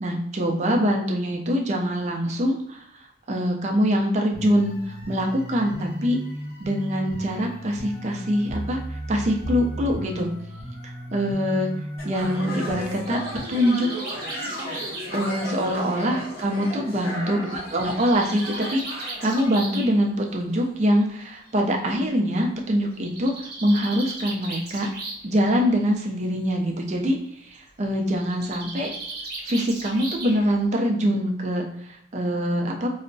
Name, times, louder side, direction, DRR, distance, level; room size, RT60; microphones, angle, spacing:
voice 1, 0.0-2.9 3.3-6.2 6.6-10.3 10.8-11.7 12.0-13.2 13.5-13.9 15.1-17.4 17.7-24.9 25.2-28.9 29.4-32.9, equal, 40° right, 1 dB, 0.4 m, -24 dB
sound 1, 4.3-13.4, equal, 40° left, 1.2 m, -35 dB
sound 2, 12.0-19.5, equal, 55° left, 1.3 m, -35 dB
Bird, 12.7-16.5 17.6-19.9 21.0-21.1 21.5-21.6 21.8-21.9 22.9-25.3 25.6-26.1 28.2-30.6, right 3 dB, 55° right, 0.8 m, -37 dB
4.3 x 2.0 x 2.6 m, 0.71 s
head